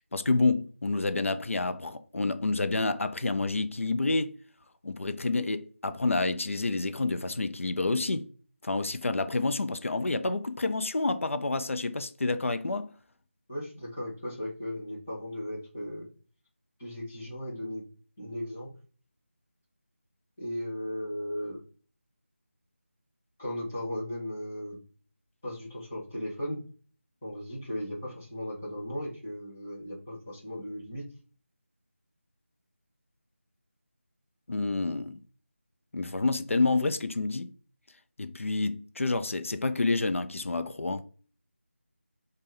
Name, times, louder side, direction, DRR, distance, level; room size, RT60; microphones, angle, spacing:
voice 1, 0.1-4.3 4.8-8.3 8.6-12.9 34.5-35.2 35.9-37.5 38.2-41.0, left 3 dB, 85° left, 0.5 m, -28 dB
voice 2, 13.5-16.1 16.8-17.8 18.2-18.7 20.4-21.6 23.4-24.8 25.4-26.6 27.2-31.1, left 1 dB, 10° left, 0.6 m, -36 dB
5.3 x 2.2 x 3.2 m
figure-of-eight pair, 180°, 7 cm